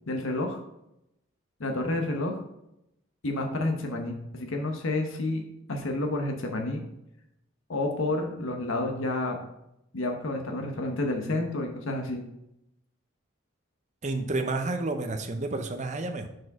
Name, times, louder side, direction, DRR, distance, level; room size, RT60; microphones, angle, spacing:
voice 1, 0.1-0.6 1.6-2.4 3.2-5.4 5.7-6.8 7.7-9.4 9.9-12.2, left 2 dB, 65° left, 3 dB, 0.9 m, -30 dB
voice 2, 14.0-16.3, right 2 dB, 35° right, 6 dB, 0.6 m, -30 dB
6.3 x 4.7 x 4.7 m, 0.83 s
head